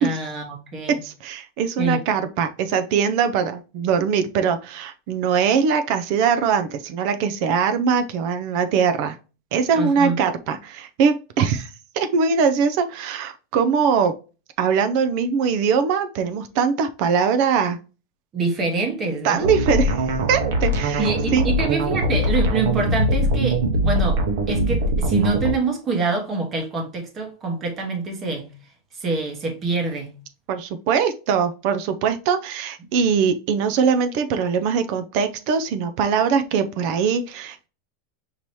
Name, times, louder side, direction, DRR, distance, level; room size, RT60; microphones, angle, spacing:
voice 1, 0.0-1.0 1.8-2.0 9.7-10.2 18.3-19.5 21.0-24.2 24.5-28.5 29.0-30.1, right 3 dB, 25° right, 1.1 m, -25 dB
voice 2, 1.0-9.2 9.5-14.1 14.6-17.8 19.2-21.5 30.5-37.7, right 6 dB, 50° right, 0.4 m, -22 dB
sound 1, 19.4-25.6, right 1 dB, 75° right, 1.0 m, -22 dB
5.3 x 2.9 x 3.0 m
supercardioid pair, 160°, 0 cm